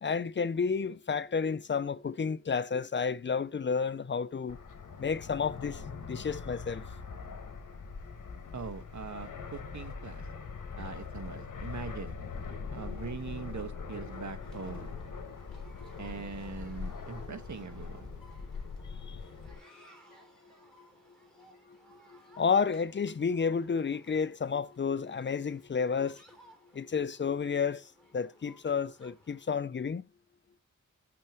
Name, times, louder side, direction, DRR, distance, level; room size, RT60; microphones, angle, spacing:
voice 1, 0.0-4.6 5.0-6.9 19.0-19.2 22.4-26.2 26.7-27.8 28.1-30.0, left 5 dB, 35° left, 0.5 m, -31 dB
Fixed-wing aircraft airplane, 4.5-19.6, left 5 dB, 70° left, 1.7 m, -42 dB
voice 2, 8.5-10.3 10.8-12.1 12.7-14.9 16.0-18.2, right 5 dB, 65° right, 1.3 m, -42 dB
sound 1, 14.4-29.5, equal, ahead, 3.5 m, -60 dB
6.8 x 6.1 x 3.0 m
wide cardioid pair, 75°, 32 cm